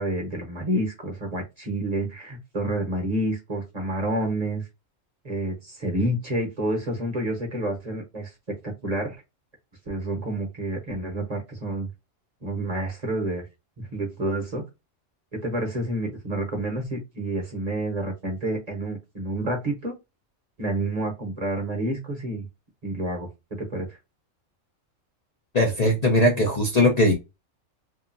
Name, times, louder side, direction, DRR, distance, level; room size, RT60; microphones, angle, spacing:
voice 1, 0.0-4.7 5.2-8.6 8.8-9.2 9.9-11.9 12.4-13.5 13.9-14.6 15.3-20.0 20.6-22.5 22.8-24.0, right 1 dB, 35° right, 1 dB, 0.9 m, -29 dB
voice 2, 25.5-27.1, left 1 dB, 40° left, 0 dB, 0.7 m, -20 dB
2.8 x 2.3 x 2.4 m, 0.23 s
omnidirectional pair, 1.3 m